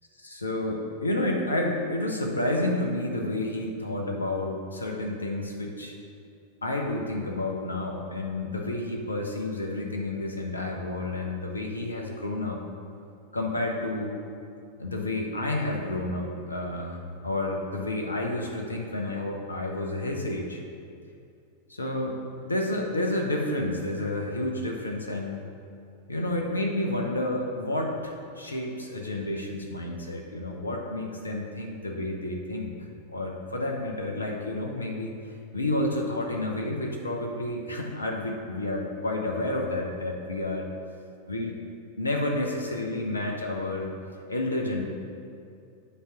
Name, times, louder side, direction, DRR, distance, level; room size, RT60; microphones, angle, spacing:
voice 1, 0.2-5.9 6.6-12.6 13.3-14.2 14.8-20.6 21.7-25.5 26.1-32.7 33.1-40.7 41.3-41.5 42.0-43.9 44.3-44.9, left 1 dB, 80° left, 1 dB, 0.7 m, -30 dB
8.2 x 3.0 x 5.9 m, 2.5 s
figure-of-eight pair, 90°, 0 cm